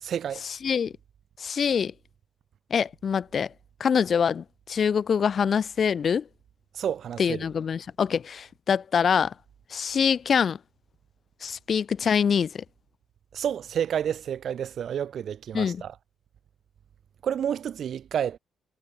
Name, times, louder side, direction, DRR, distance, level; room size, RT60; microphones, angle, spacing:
voice 1, 0.0-0.5 6.7-7.4 13.3-15.9 17.2-18.4, right 9 dB, 60° right, 1.3 m, -30 dB
voice 2, 1.4-1.9 2.7-3.5 3.8-6.2 7.2-9.3 9.7-10.6 11.4-12.6 15.5-15.8, left 7 dB, 50° left, 0.7 m, -24 dB
cardioid pair, 90°, 0 cm